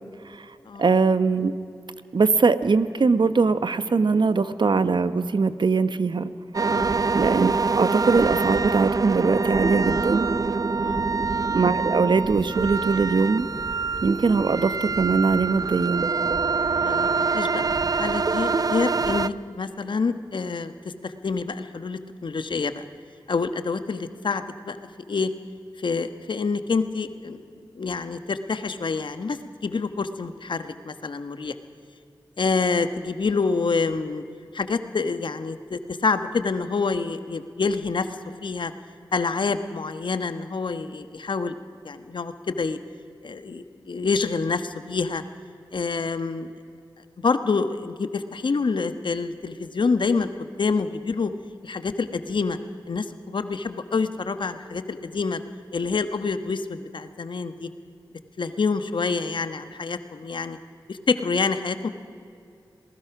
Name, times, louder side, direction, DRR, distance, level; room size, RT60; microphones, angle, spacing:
voice 1, 0.2-1.5 2.1-6.3 7.1-10.3 11.5-13.5 14.0-16.1, right 4 dB, 65° right, 12 dB, 1.1 m, -21 dB
sound 1, 6.5-19.3, right 4 dB, 45° right, 0.6 m, -25 dB
voice 2, 16.8-20.7 21.0-22.8 23.3-24.8 25.1-25.3 25.8-27.4 27.7-31.5 32.4-34.2 34.5-38.1 38.4-38.7 39.1-41.5 41.8-42.8 43.2-45.2 45.7-46.5 47.2-50.3 50.6-51.3 51.6-52.6 52.9-55.4 55.7-57.7 58.4-60.6 60.9-61.9, left 4 dB, 70° left, 9 dB, 1.3 m, -27 dB
27.0 x 19.5 x 6.0 m, 2.5 s
cardioid pair, 45°, 8 cm